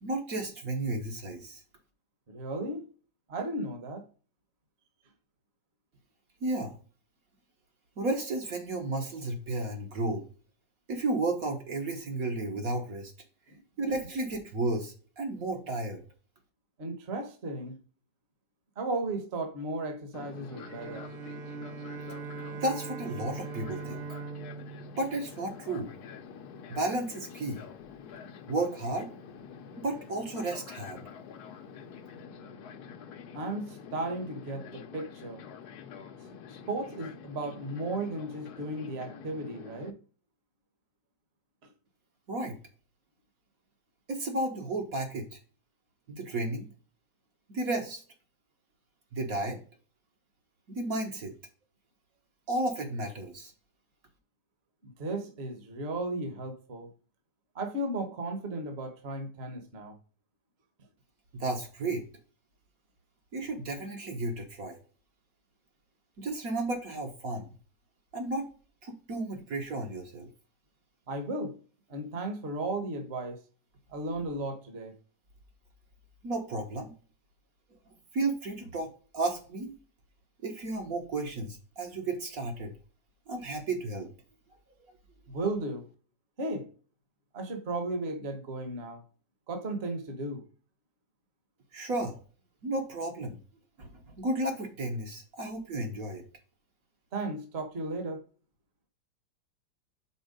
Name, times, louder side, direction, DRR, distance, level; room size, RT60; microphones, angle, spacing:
voice 1, 0.0-1.6 6.4-6.8 8.0-10.2 10.9-13.1 13.8-16.0 22.5-24.0 25.0-25.9 26.7-27.6 28.5-29.1 29.8-31.0 42.3-42.6 44.1-45.4 46.1-46.7 47.5-48.0 49.1-49.6 50.7-51.3 52.5-53.5 61.3-62.0 63.3-64.8 66.2-67.5 68.1-68.4 68.8-70.3 76.2-76.9 78.1-79.7 80.4-82.7 83.3-84.1 91.7-92.2 92.6-93.4 93.8-96.2, right 2 dB, 55° right, 1.5 m, -33 dB
voice 2, 2.3-2.9 3.3-4.0 13.5-13.6 16.8-17.8 18.8-21.1 33.3-35.4 36.7-39.9 54.8-56.9 57.5-59.9 71.1-71.6 71.9-73.4 73.9-74.9 85.3-85.9 86.4-86.7 87.3-89.0 89.5-90.4 97.1-98.2, right 2 dB, 40° right, 1.3 m, -35 dB
Fixed-wing aircraft airplane, 20.1-39.9, left 7 dB, 65° left, 1.2 m, -47 dB
Bowed string instrument, 20.5-25.9, right 5 dB, 80° right, 0.5 m, -41 dB
5.5 x 4.3 x 5.0 m
omnidirectional pair, 1.9 m